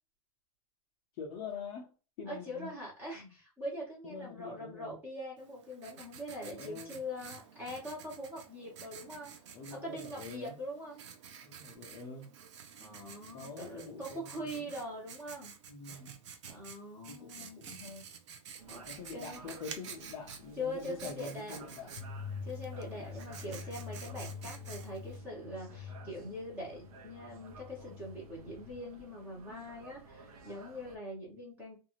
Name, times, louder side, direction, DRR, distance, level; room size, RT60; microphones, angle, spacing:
voice 1, 1.2-2.7 3.1-3.3 4.0-5.0 6.5-7.0 9.5-10.6 11.4-12.3 13.3-14.7 15.7-16.1 17.1-18.1 18.9-21.9 22.9-23.1, left 5 dB, 20° left, -4 dB, 0.4 m, -45 dB
voice 2, 2.3-9.4 9.7-11.0 12.8-15.5 16.5-17.6 18.7-18.8 19.1-19.4 20.6-21.8 22.4-31.8, left 1 dB, 10° right, -4 dB, 0.9 m, -43 dB
Writing, 5.4-25.2, right 7 dB, 50° right, 0.5 m, -51 dB
sound 1, 18.6-31.0, right 3 dB, 80° right, 0.8 m, -55 dB
sound 2, 21.9-28.8, left 5 dB, 65° left, 0.7 m, -46 dB
2.6 x 2.4 x 2.9 m, 0.33 s
supercardioid pair, 180°, 19 cm